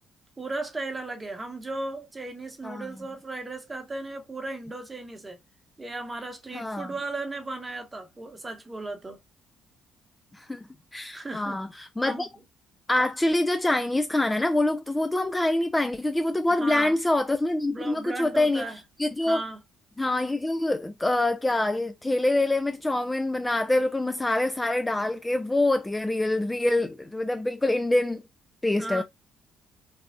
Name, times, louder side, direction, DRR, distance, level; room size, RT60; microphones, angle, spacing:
voice 1, 0.4-5.4 5.8-9.2 11.1-11.6 12.0-12.3 16.5-17.0 17.7-18.8 19.2-19.6 28.8-29.0, right 2 dB, 20° right, 1.0 m, -36 dB
voice 2, 6.5-6.9 10.3-10.7 10.9-12.3 12.9-18.7 19.0-19.4 20.0-28.2 28.6-29.0, left 2 dB, 15° left, 0.4 m, -25 dB
3.3 x 2.4 x 2.4 m
supercardioid pair, 75°, 0 cm